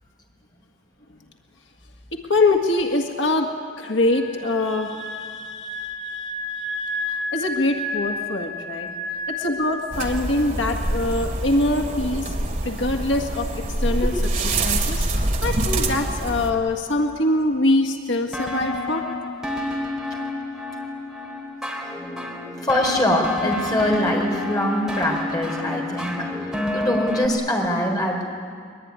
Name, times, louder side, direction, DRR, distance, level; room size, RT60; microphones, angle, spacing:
voice 1, 2.1-3.5 3.8-8.9 9.3-12.3 12.6-14.1 14.6-19.0, left 2 dB, 80° left, 3 dB, 1.9 m, -24 dB
sound 1, 4.0-10.4 10.7-10.9, left 1 dB, 25° right, 4.0 m, -31 dB
sound 2, 9.9-16.5, right 1 dB, 45° right, 3.0 m, -25 dB
voice 2, 14.0-14.5 22.6-28.3, left 1 dB, 20° left, 0 dB, 4.4 m, -24 dB
sound 3, 18.3-27.3, left 2 dB, ahead, 3.6 m, -29 dB
23.0 x 22.0 x 9.7 m, 2.1 s
head